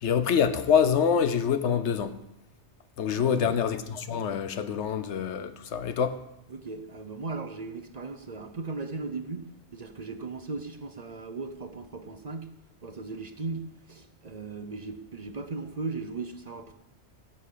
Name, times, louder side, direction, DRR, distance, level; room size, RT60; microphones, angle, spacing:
voice 1, 0.0-2.1 3.0-6.1, left 7 dB, 85° left, 1.1 m, -25 dB
voice 2, 3.2-3.6 6.5-9.5 9.7-12.5 12.8-16.7, right 3 dB, 40° right, 0.8 m, -37 dB
14.5 x 5.6 x 8.4 m
omnidirectional pair, 1.1 m